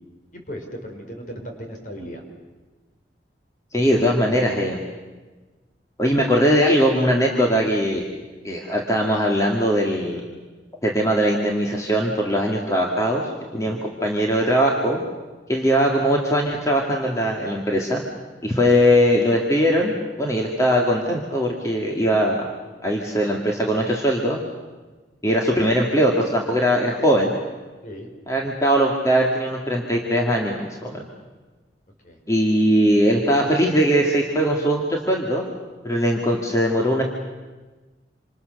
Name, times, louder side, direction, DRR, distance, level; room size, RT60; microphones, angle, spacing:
voice 1, 0.3-2.2 3.8-4.2 13.6-13.8 27.8-28.1 32.0-32.2, equal, 45° left, 2 dB, 5.0 m, -37 dB
voice 2, 3.7-4.8 6.0-8.0 8.4-10.2 10.8-13.2 13.5-15.0 15.5-18.0 18.4-22.4 22.8-24.4 25.2-27.4 28.3-31.0 32.3-35.4 35.8-37.0, equal, 20° left, -1 dB, 2.4 m, -20 dB
27.5 x 27.0 x 6.8 m, 1.3 s
head